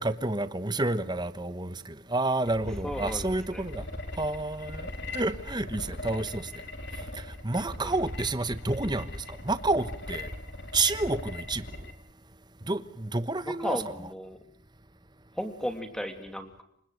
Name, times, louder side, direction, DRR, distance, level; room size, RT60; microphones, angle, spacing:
voice 1, 0.0-3.9 4.2-6.6 6.9-10.3 10.7-11.7 12.6-13.8, right 2 dB, 20° right, 1.2 m, -30 dB
sound 1, 2.5-11.9, left 1 dB, 50° left, 3.5 m, -39 dB
voice 2, 2.8-3.7 7.8-7.9 13.5-14.4 15.3-16.6, equal, 5° left, 2.8 m, -35 dB
28.5 x 25.5 x 6.5 m
head